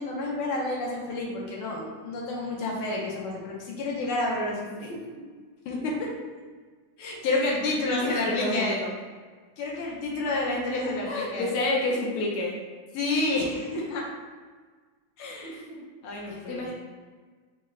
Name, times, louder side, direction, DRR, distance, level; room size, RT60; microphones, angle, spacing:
voice 1, 0.0-4.9 5.6-6.1 7.0-8.8 9.6-11.5 12.9-14.0 15.2-15.6 16.0-16.7, left 2 dB, 80° left, -2 dB, 1.7 m, -29 dB
voice 2, 4.7-5.3 8.0-8.9 11.0-12.6 15.4-15.8 16.3-16.7, left 2 dB, 60° left, -3 dB, 1.2 m, -30 dB
5.3 x 2.1 x 3.7 m, 1.5 s
omnidirectional pair, 2.4 m